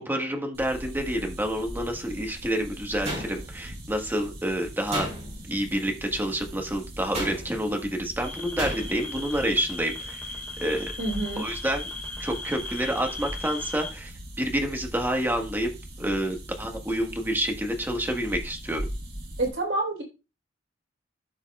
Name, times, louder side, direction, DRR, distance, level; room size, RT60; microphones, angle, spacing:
voice 1, 0.0-5.1 5.5-10.2 10.6-10.9 11.4-11.8 12.2-14.1 14.4-15.7 16.0-18.8, equal, 10° right, 3 dB, 1.5 m, -28 dB
sound 1, 0.5-19.5, equal, 55° right, 2.8 m, -41 dB
sound 2, 3.0-3.8 4.9-5.6 7.1-7.7 8.6-9.1, right 1 dB, 40° right, 4.0 m, -33 dB
sound 3, 8.2-13.9, left 2 dB, 10° left, 3.1 m, -38 dB
voice 2, 11.0-11.5 19.4-20.0, right 2 dB, 80° right, 0 dB, 4.2 m, -27 dB
14.5 x 5.5 x 2.3 m, 0.29 s
head